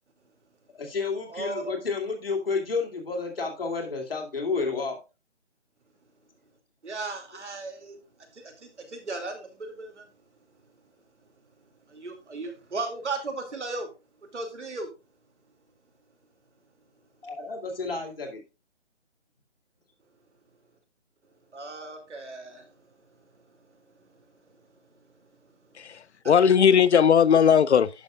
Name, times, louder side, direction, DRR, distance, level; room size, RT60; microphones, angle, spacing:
voice 1, 0.7-5.0 17.2-18.4, left 4 dB, 50° left, 2.4 m, -30 dB
voice 2, 1.3-1.7 6.8-8.0 8.3-10.1 11.9-13.9 14.3-14.9 21.5-22.7, right 3 dB, 75° right, 2.7 m, -36 dB
voice 3, 25.8-27.9, left 7 dB, 70° left, 0.6 m, -18 dB
11.5 x 6.3 x 2.4 m
hypercardioid pair, 175°, 35 cm